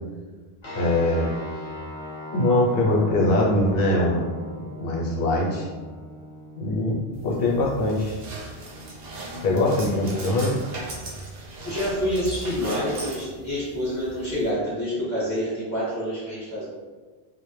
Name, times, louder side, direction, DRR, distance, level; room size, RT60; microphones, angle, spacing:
sound 1, 0.6-11.8, left 1 dB, 35° left, 0.5 m, -41 dB
voice 1, 0.7-1.3 2.3-4.2 4.8-5.6 6.6-8.2 9.4-10.6, left 1 dB, 65° left, -4 dB, 0.8 m, -22 dB
sound 2, 7.1-14.5, right 2 dB, 55° right, 0.5 m, -38 dB
voice 2, 11.6-16.6, equal, 25° right, -12 dB, 0.9 m, -27 dB
2.1 x 2.0 x 3.0 m, 1.4 s
omnidirectional pair, 1.1 m